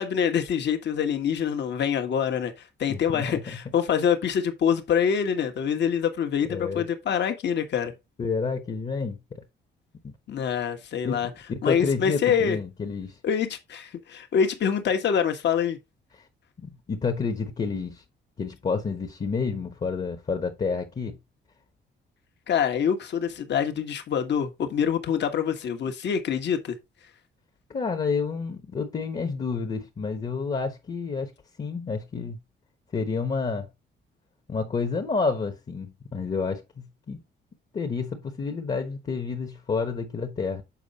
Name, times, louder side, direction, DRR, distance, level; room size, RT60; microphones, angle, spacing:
voice 1, 0.0-2.5 2.8-7.9 10.3-11.3 11.6-12.6 13.2-15.8 22.5-26.8, left 7 dB, 60° left, 1.4 m, -25 dB
voice 2, 2.9-3.4 6.5-6.8 8.2-9.2 10.0-10.1 11.0-11.2 11.5-13.2 16.6-18.0 18.4-21.2 27.7-31.3 31.6-32.4 32.9-33.7 34.5-37.2 37.7-40.6, left 4 dB, 35° left, 1.2 m, -29 dB
7.3 x 4.5 x 4.1 m
cardioid pair, 90°, 20 cm